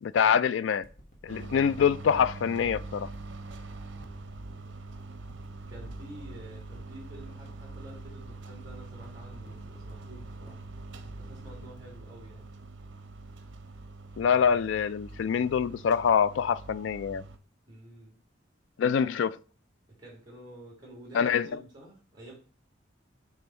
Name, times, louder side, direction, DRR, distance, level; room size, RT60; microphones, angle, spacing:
voice 1, 0.0-0.9 1.2-3.1 14.2-17.2 18.8-19.4 21.1-21.5, left 7 dB, 75° left, 0.3 m, -25 dB
sound 1, 0.8-13.6 14.2-14.3, equal, 50° left, 1.4 m, -55 dB
sound 2, 1.3-17.4, right 2 dB, 75° right, 0.7 m, -44 dB
voice 2, 5.7-10.6 11.2-12.5 17.7-18.2 19.9-22.3, right 1 dB, 20° right, 2.0 m, -49 dB
6.8 x 3.5 x 4.2 m
head